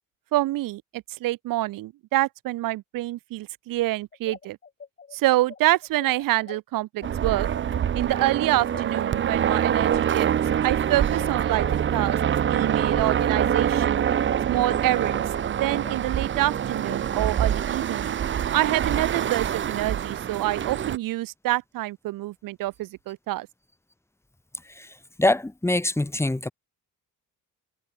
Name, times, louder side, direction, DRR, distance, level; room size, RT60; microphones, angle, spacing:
voice 1, 0.3-4.6 5.1-7.5 7.9-10.3 10.6-12.2 12.5-14.0 14.5-15.2 15.6-18.2 18.5-23.5, right 17 dB, 80° right, 0.8 m, -26 dB
sound 1, 4.1-13.5 13.9-17.0, left 6 dB, 30° left, 4.9 m, -44 dB
sound 2, 7.0-21.0, right 9 dB, 35° right, 0.8 m, -25 dB
voice 2, 25.2-26.5, left 1 dB, 10° left, 1.4 m, -24 dB
cardioid pair, 155°, 33 cm